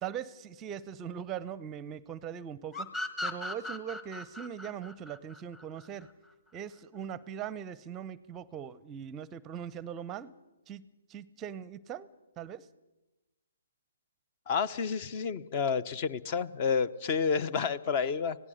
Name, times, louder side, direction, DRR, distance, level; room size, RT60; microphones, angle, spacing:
voice 1, 0.0-2.9 3.2-6.1 6.5-10.3 10.7-12.1 12.4-12.7, right 9 dB, 20° right, 19 dB, 0.6 m, -40 dB
sound 1, 2.7-6.1, left 1 dB, 15° left, 1.4 m, -38 dB
voice 2, 14.5-18.4, left 6 dB, 35° left, 17 dB, 0.8 m, -30 dB
26.0 x 17.5 x 6.5 m, 1.0 s
figure-of-eight pair, 135°, 0 cm